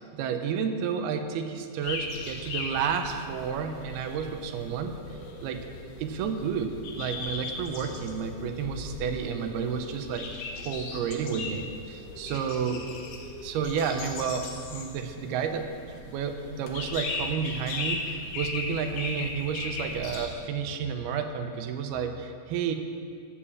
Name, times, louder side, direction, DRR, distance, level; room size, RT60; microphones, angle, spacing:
voice 1, 0.1-5.0 5.4-5.7 6.0-10.3 10.7-12.9 13.4-15.7 16.0-22.8, right 6 dB, 85° right, 6 dB, 2.8 m, -31 dB
sound 1, 1.8-20.3, left 3 dB, 80° left, 3.2 m, -38 dB
13.5 x 7.2 x 7.2 m, 2.3 s
omnidirectional pair, 4.4 m